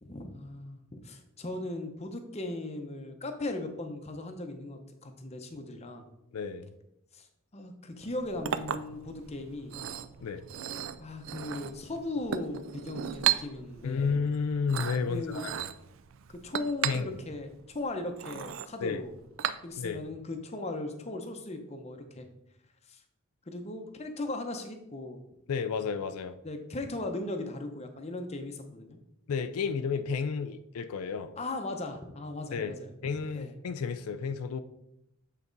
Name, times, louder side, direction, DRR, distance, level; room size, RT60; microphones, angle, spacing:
voice 1, 0.0-6.1 7.1-7.3 7.5-9.8 11.0-14.1 15.1-15.5 16.3-19.1 19.6-22.3 22.9-23.0 23.5-25.2 26.4-29.0 31.4-32.9 33.3-33.5, left 2 dB, 30° left, 5 dB, 0.7 m, -38 dB
voice 2, 6.3-6.7 10.2-10.4 13.8-15.7 16.8-17.1 18.8-19.0 19.8-20.0 25.5-26.4 29.3-31.4 32.5-32.8 33.0-34.6, left 5 dB, 85° left, 10 dB, 0.4 m, -32 dB
Chink clink, 8.0-20.0, right 10 dB, 60° right, 0.4 m, -36 dB
8.2 x 4.1 x 3.9 m, 0.84 s
head